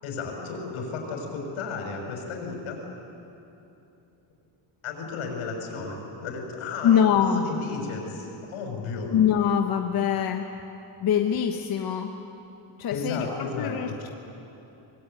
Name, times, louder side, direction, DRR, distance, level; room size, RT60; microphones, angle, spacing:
voice 1, 0.0-2.8 4.8-9.1 12.9-13.9, left 4 dB, 85° left, 1 dB, 6.3 m, -34 dB
voice 2, 6.8-7.4 9.1-10.4 11.0-12.1 12.8-14.1, left 8 dB, 45° left, 4 dB, 1.3 m, -23 dB
24.5 x 21.5 x 9.2 m, 2.9 s
cardioid pair, 170°, 48 cm